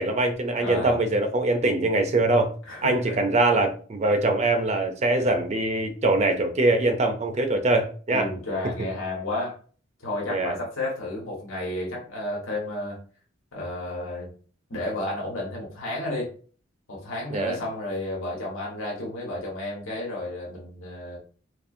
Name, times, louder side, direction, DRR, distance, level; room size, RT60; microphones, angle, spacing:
voice 1, 0.0-2.5 2.8-8.3 10.3-10.5 17.3-17.6, right 2 dB, 35° right, 6 dB, 0.5 m, -23 dB
voice 2, 0.6-0.9 2.7-3.2 8.1-9.5 10.0-13.0 13.5-14.3 14.7-16.3 16.9-21.2, left 1 dB, 85° left, -3 dB, 1.4 m, -32 dB
4.2 x 3.1 x 2.6 m, 0.41 s
head